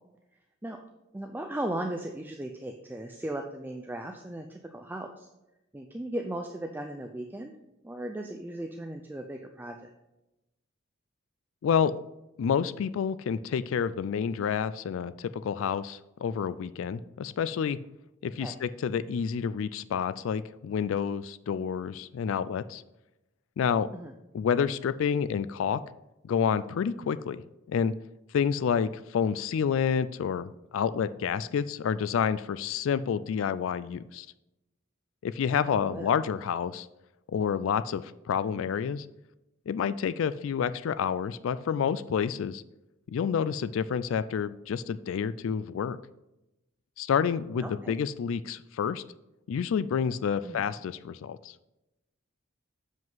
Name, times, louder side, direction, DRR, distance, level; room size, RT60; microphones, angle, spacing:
voice 1, 1.1-5.3 5.7-7.5 7.8-9.9 18.4-18.5 23.9-24.1 35.5-36.1 47.6-48.0 50.4-50.6, right 1 dB, 10° right, 4 dB, 0.4 m, -37 dB
voice 2, 11.6-11.9 12.4-17.8 18.2-22.8 23.6-23.9 24.3-25.8 26.2-27.9 28.3-34.3 35.2-36.9 37.3-39.1 39.7-42.6 43.1-46.0 47.0-49.0 49.5-51.5, left 7 dB, 70° left, 15 dB, 0.3 m, -29 dB
7.4 x 5.1 x 3.9 m, 0.94 s
head